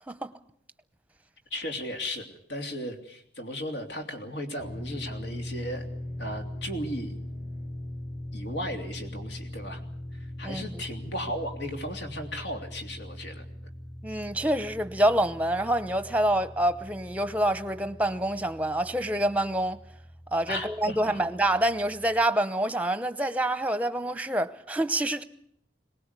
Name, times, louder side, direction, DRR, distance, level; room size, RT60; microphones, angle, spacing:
voice 1, 1.5-5.9 6.2-7.2 8.3-9.8 10.1-13.7 20.5-21.2, equal, 75° left, 3.2 m, -36 dB
sound 1, 4.6-22.2, left 1 dB, 45° left, 3.4 m, -41 dB
voice 2, 14.0-19.8 20.3-25.2, right 1 dB, 10° right, 0.8 m, -27 dB
22.5 x 19.5 x 8.3 m
head